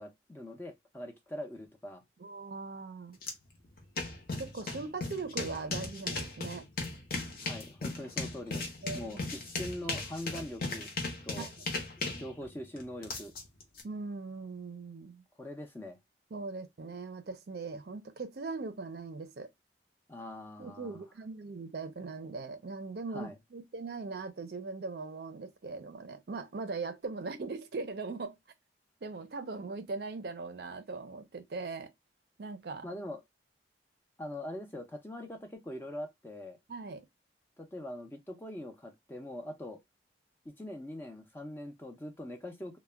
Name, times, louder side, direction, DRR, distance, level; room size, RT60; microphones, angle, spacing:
voice 1, 0.0-2.0 7.4-10.9 11.2-11.5 12.1-13.3 15.4-16.0 20.1-21.0 23.1-23.4 32.8-33.2 34.2-36.6 37.6-39.8 40.6-42.8, left 1 dB, 10° left, 0.4 m, -42 dB
voice 2, 2.2-3.2 4.4-6.7 8.8-9.2 11.4-11.5 13.8-15.2 16.3-19.5 20.6-28.4 29.0-31.9 32.4-32.9 36.7-37.0, right 3 dB, 60° right, 0.5 m, -40 dB
sound 1, 3.2-3.3 3.6-13.8, left 3 dB, 50° left, 0.7 m, -37 dB
2.2 x 2.1 x 3.3 m
head